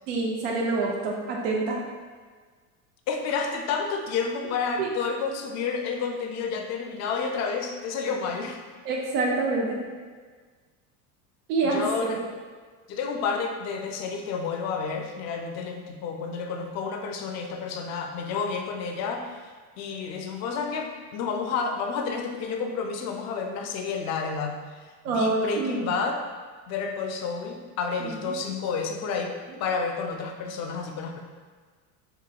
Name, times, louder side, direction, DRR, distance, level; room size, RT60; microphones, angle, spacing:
voice 1, 0.1-1.8 4.8-4.9 8.8-9.8 11.5-12.2 25.0-25.8 28.0-28.3, right 3 dB, 85° right, -1 dB, 0.7 m, -26 dB
voice 2, 3.1-8.6 11.6-12.2 12.9-24.5 25.1-26.2 26.7-29.3 29.6-31.2, left 5 dB, 40° left, 3 dB, 0.4 m, -30 dB
3.8 x 2.6 x 2.2 m, 1.5 s
supercardioid pair, 100°, 45 cm